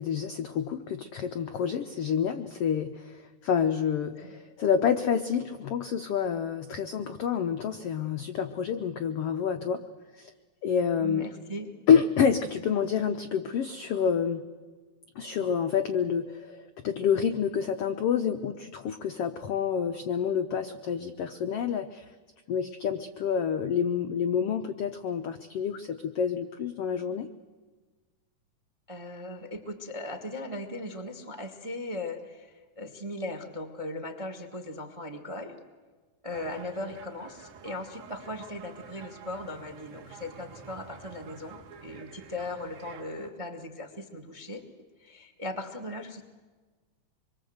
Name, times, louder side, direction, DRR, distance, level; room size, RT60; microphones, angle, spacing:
voice 1, 0.0-9.8 10.2-10.3 10.6-11.3 11.9-14.4 15.2-22.0 22.5-27.3, left 7 dB, 80° left, 7 dB, 1.3 m, -28 dB
voice 2, 11.0-11.7 28.9-35.6 36.2-44.6 45.0-46.2, left 1 dB, 25° right, 6 dB, 0.6 m, -38 dB
sound 1, 36.3-43.3, right 7 dB, 85° right, 3.4 m, -49 dB
25.0 x 23.0 x 7.9 m, 1.4 s
omnidirectional pair, 3.8 m